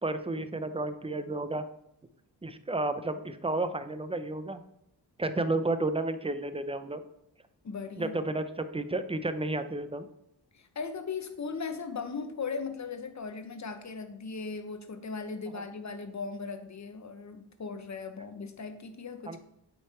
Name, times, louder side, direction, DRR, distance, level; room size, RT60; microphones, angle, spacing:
voice 1, 0.0-1.6 2.4-4.6 5.2-7.0 8.0-10.1 19.3-19.4, right 2 dB, 15° right, 10 dB, 0.6 m, -32 dB
voice 2, 7.6-8.2 10.5-19.4, left 5 dB, 40° left, 8 dB, 0.9 m, -38 dB
8.8 x 3.4 x 4.3 m, 0.77 s
cardioid pair, 55°, 44 cm